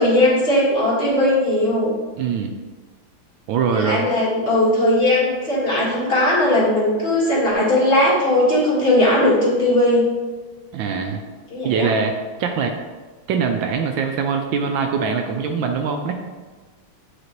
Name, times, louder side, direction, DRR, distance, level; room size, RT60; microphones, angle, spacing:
voice 1, 0.0-1.9 3.7-10.0 11.5-11.9, left 1 dB, 30° left, -7 dB, 1.7 m, -18 dB
voice 2, 2.2-2.5 3.5-4.1 10.7-11.2 11.6-12.7 13.3-16.2, right 5 dB, 75° right, 4 dB, 1.3 m, -22 dB
7.9 x 4.2 x 3.0 m, 1.3 s
omnidirectional pair, 2.2 m